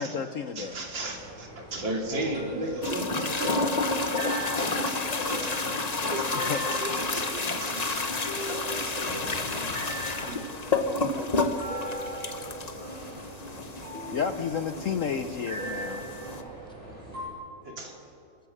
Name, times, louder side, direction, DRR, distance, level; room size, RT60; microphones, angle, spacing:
voice 1, 0.0-0.8 6.3-6.6 14.1-16.1, left 6 dB, 60° left, 9 dB, 0.9 m, -31 dB
voice 2, 0.5-3.7 4.5-5.6 6.1-8.1 8.5-9.5 9.8-9.9 10.2-10.5 17.6-18.0, right 1 dB, 85° right, 1 dB, 3.4 m, -35 dB
sound 1, 0.6-17.3, equal, 40° right, 7.4 m, -40 dB
sound 2, 2.8-16.4, left 3 dB, 25° left, 0.9 m, -30 dB
voice 3, 4.2-5.4 16.0-17.0, equal, 5° left, 2 dB, 1.9 m, -50 dB
29.5 x 14.5 x 6.6 m, 2.6 s
omnidirectional pair, 2.0 m